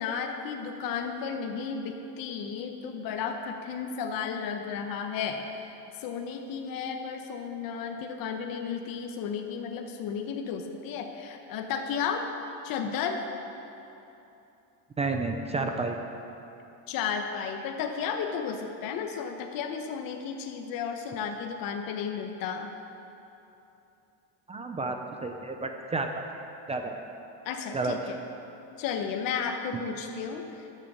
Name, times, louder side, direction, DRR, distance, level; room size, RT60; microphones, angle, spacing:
voice 1, 0.0-12.3 12.6-13.2 16.9-22.7 27.4-28.2 28.8-30.7, left 6 dB, 50° left, 4 dB, 1.0 m, -33 dB
voice 2, 15.0-16.0 24.5-26.2 26.7-27.0 27.7-28.0 29.7-29.8, right 3 dB, 15° right, 4 dB, 0.4 m, -31 dB
12.0 x 7.5 x 6.6 m, 2.9 s
cardioid pair, 140°, 44 cm